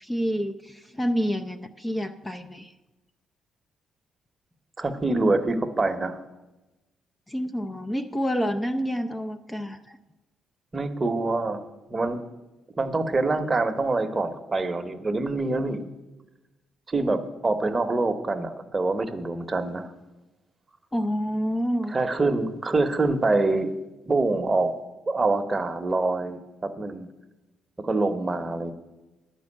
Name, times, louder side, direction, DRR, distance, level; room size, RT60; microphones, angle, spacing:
voice 1, 0.0-2.7 7.3-10.0 20.9-22.0, equal, 15° left, 8 dB, 0.5 m, -28 dB
voice 2, 4.8-6.2 10.7-12.2 12.8-15.8 16.9-19.9 21.9-23.7 24.1-24.7 25.1-27.1 27.8-28.7, right 3 dB, 25° right, 8 dB, 0.9 m, -25 dB
10.5 x 5.3 x 8.5 m, 1.1 s
cardioid pair, 90°, 0 cm